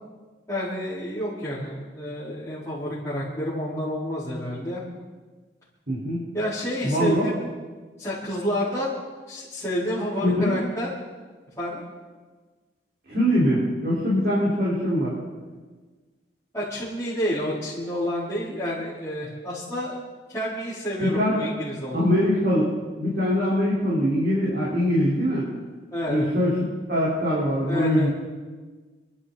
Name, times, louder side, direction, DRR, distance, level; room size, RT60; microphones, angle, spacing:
voice 1, 0.5-4.8 6.3-7.4 8.0-9.0 9.3-10.9 11.6-11.8 16.5-20.0 20.3-22.1 25.9-26.3 27.7-28.1, equal, 15° left, -13 dB, 4.4 m, -29 dB
voice 2, 5.9-6.2 6.8-7.3 10.2-10.5 13.1-15.1 21.0-21.3 21.9-22.7 23.0-25.5 26.1-26.5 26.9-28.1, equal, 60° right, -9 dB, 4.9 m, -22 dB
28.5 x 11.5 x 4.3 m, 1.4 s
head